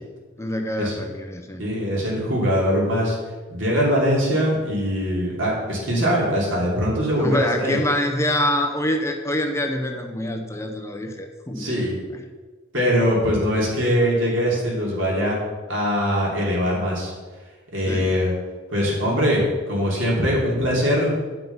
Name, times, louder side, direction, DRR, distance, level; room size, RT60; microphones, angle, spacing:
voice 1, 0.4-1.6 7.1-11.8 17.9-18.1, left 1 dB, 15° left, 4 dB, 0.6 m, -25 dB
voice 2, 1.6-3.2 3.5-7.8 11.6-11.9 12.7-15.4 15.7-17.1 17.7-18.3 18.7-21.1, equal, 70° right, -4 dB, 3.1 m, -22 dB
9.2 x 5.8 x 5.5 m, 1.4 s
head